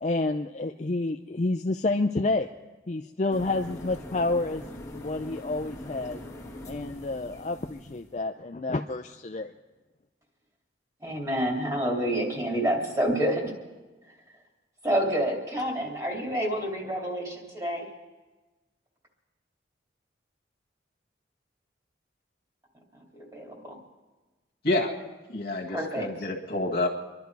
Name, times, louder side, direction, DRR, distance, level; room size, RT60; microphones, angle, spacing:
voice 1, 0.0-2.5 2.9-4.6 4.9-6.2 6.7-9.5, left 2 dB, 40° left, 5 dB, 0.5 m, -29 dB
sound 1, 3.3-8.1, left 1 dB, 15° left, 1.8 m, -42 dB
voice 2, 11.0-13.5 14.8-17.9 23.2-23.8 25.7-26.1, right 1 dB, 20° right, -1 dB, 2.7 m, -28 dB
voice 3, 25.3-26.9, left 2 dB, 55° left, 0 dB, 1.9 m, -28 dB
25.5 x 12.0 x 4.7 m, 1.2 s
head